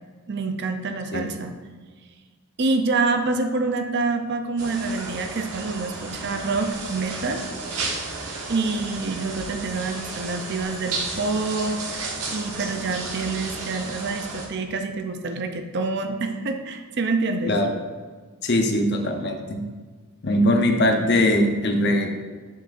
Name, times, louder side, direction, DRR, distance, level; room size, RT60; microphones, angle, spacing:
voice 1, 0.3-1.5 2.6-7.4 8.5-11.8 12.3-17.6, right 3 dB, 50° right, 6 dB, 0.5 m, -26 dB
sound 1, 4.6-14.5, right 3 dB, 80° right, 1.2 m, -33 dB
voice 2, 18.4-19.6 20.2-22.1, left 1 dB, 50° left, 3 dB, 0.7 m, -21 dB
7.0 x 6.2 x 2.5 m, 1.5 s
head